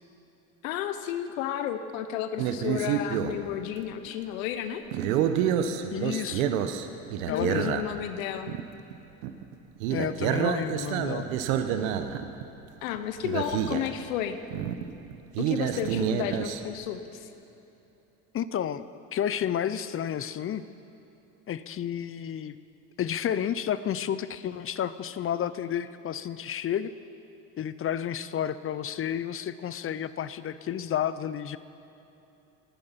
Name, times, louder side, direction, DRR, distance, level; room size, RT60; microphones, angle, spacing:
voice 1, 0.6-4.8 7.3-8.6 12.8-14.4 15.4-17.3, left 10 dB, 85° left, 9 dB, 0.9 m, -32 dB
sound 1, 2.4-3.4 3.9-4.1 4.9-8.2 8.5-8.6 8.9-9.0 9.2-9.5 9.8-12.4 13.0-13.1 13.2-14.0 14.5-16.6, right 9 dB, 85° right, 1.0 m, -28 dB
voice 2, 5.9-6.5 7.3-7.8 9.9-11.3 18.3-18.8 19.1-20.6 21.5-22.6 23.0-26.9 27.6-31.6, left 9 dB, 35° left, 15 dB, 0.6 m, -31 dB
18.0 x 11.5 x 5.8 m, 2.9 s
supercardioid pair, 85°, 40 cm